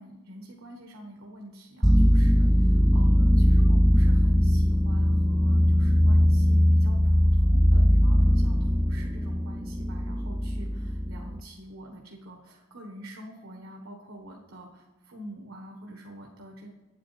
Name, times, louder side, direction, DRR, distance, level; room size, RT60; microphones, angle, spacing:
voice 1, 0.0-16.7, right 1 dB, 75° right, 1 dB, 1.3 m, -46 dB
sound 1, 1.8-11.4, equal, ahead, 0.3 m, -20 dB
9.3 x 8.6 x 4.1 m, 1.2 s
head